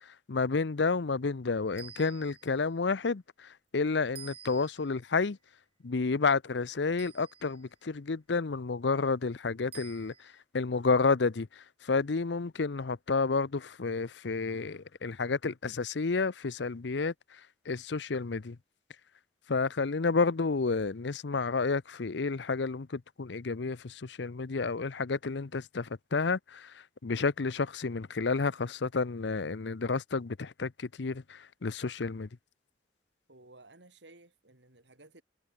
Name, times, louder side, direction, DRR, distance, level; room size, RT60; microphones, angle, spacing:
voice 1, 0.3-5.4 5.8-17.1 17.7-18.6 19.5-32.3, left 4 dB, 70° left, 0.7 m, -30 dB
sound 1, 1.8-2.6 4.2-5.0 7.0-7.7 9.7-10.4, right 8 dB, 30° right, 4.7 m, -50 dB
voice 2, 33.3-35.2, right 2 dB, 75° right, 3.8 m, -56 dB
head